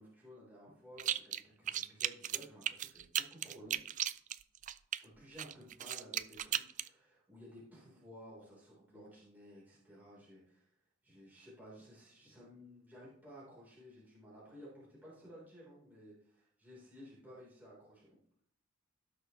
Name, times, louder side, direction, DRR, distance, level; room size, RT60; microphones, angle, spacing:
voice 1, 0.0-3.8 5.0-10.7 11.0-18.1, equal, 10° right, -7 dB, 4.0 m, -55 dB
sound 1, 1.0-1.4 1.7-5.0 5.4-6.9, right 11 dB, 40° right, 0.4 m, -36 dB
17.0 x 6.3 x 3.2 m, 0.66 s
head